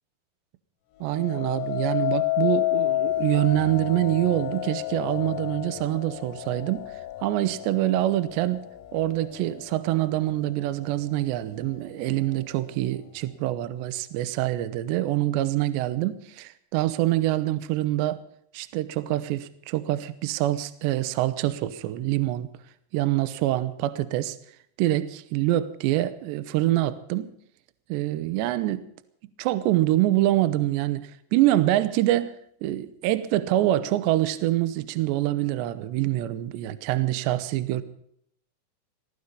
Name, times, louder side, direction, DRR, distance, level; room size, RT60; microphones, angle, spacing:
voice 1, 1.0-6.9 7.2-18.2 18.5-22.5 22.9-24.4 24.8-27.3 27.9-28.9 29.4-32.3 32.6-37.8, right 15 dB, 80° right, 2.7 m, -25 dB
sound 1, 1.1-10.2 10.8-11.2, left 15 dB, 85° left, 3.8 m, -30 dB
19.0 x 14.0 x 5.5 m
omnidirectional pair, 5.9 m